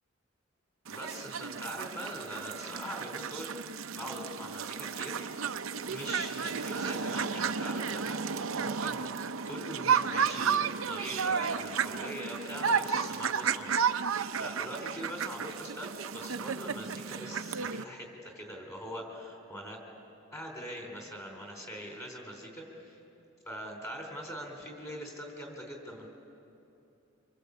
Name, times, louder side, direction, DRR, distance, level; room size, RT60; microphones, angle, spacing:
voice 1, 0.9-3.6 3.9-5.3 5.8-19.8 20.3-23.0 23.5-26.1, equal, 15° left, 2 dB, 4.2 m, -42 dB
sound 1, 0.9-17.8, right 6 dB, 80° right, 0.7 m, -33 dB
26.5 x 26.0 x 8.4 m, 2.8 s
head